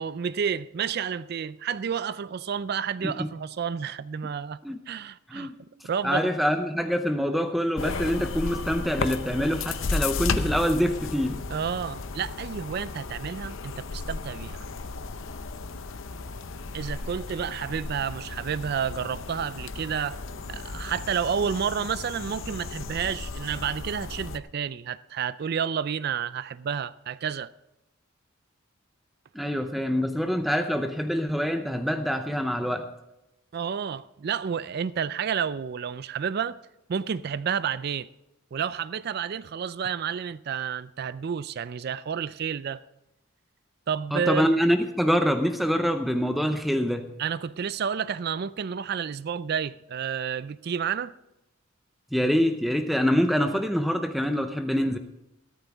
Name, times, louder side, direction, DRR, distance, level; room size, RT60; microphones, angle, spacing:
voice 1, 0.0-4.6 4.9-5.5 5.8-6.3 11.5-14.7 16.7-20.2 20.5-27.5 33.5-36.6 36.9-38.1 38.5-42.8 43.9-44.5 47.2-51.1, right 7 dB, 50° right, 0.4 m, -30 dB
voice 2, 6.0-11.4 29.3-32.9 44.1-47.1 52.1-55.0, equal, ahead, 0.6 m, -25 dB
sound 1, 7.8-24.4, left 4 dB, 70° left, 0.7 m, -34 dB
14.5 x 13.0 x 3.5 m
head